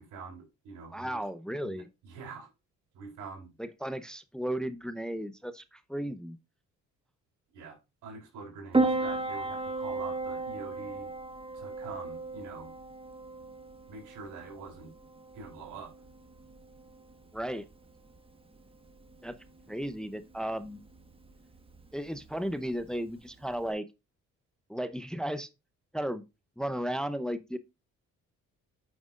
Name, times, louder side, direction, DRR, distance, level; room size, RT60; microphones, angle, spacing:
voice 1, 0.0-1.2 1.6-2.5 2.9-3.5 7.5-11.1 11.5-12.7 13.9-14.9 15.3-15.9, right 4 dB, 90° right, 3.8 m, -45 dB
voice 2, 0.9-1.9 3.6-6.4 17.3-17.7 19.2-19.3 19.7-20.8 21.9-23.9 24.7-25.5 25.9-26.2 26.6-27.6, equal, ahead, 0.7 m, -34 dB
Piano, 8.7-23.7, right 3 dB, 20° right, 1.3 m, -36 dB
9.1 x 6.0 x 2.4 m
cardioid pair, 90°, 30 cm